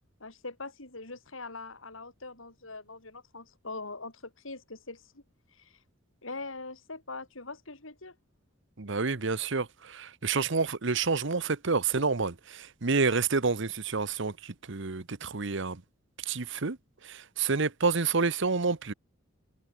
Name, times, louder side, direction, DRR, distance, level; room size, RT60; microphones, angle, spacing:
voice 1, 0.2-5.2 5.5-5.8 6.2-8.2, left 3 dB, 85° left, 4.8 m, -42 dB
voice 2, 8.8-15.8 16.2-16.8 17.0-18.9, right 4 dB, 70° right, 1.1 m, -29 dB
head